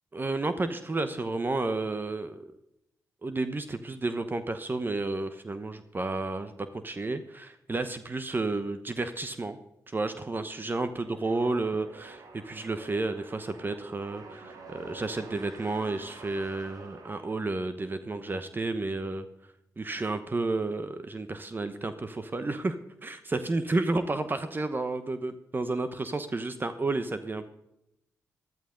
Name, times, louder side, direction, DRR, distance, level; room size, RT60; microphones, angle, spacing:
voice 1, 0.1-2.5 3.2-9.6 9.9-19.3 19.8-27.5, right 2 dB, 35° right, 10 dB, 1.0 m, -31 dB
sound 1, 11.0-17.8, right 3 dB, 75° right, 2.4 m, -48 dB
14.0 x 12.0 x 3.9 m, 0.86 s
cardioid pair, 65°, 6 cm